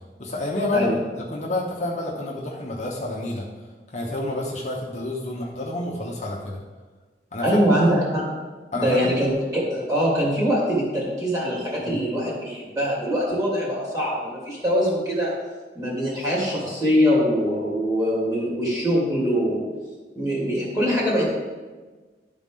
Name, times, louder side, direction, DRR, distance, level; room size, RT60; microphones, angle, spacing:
voice 1, 0.2-3.4 3.9-6.6 7.3-7.6 8.7-9.2 11.8-12.0, left 2 dB, 40° left, -3 dB, 0.9 m, -29 dB
voice 2, 7.4-8.3 8.7-15.3 15.7-19.6 20.1-21.3, equal, 20° right, -6 dB, 2.5 m, -23 dB
12.0 x 4.2 x 3.7 m, 1.3 s
head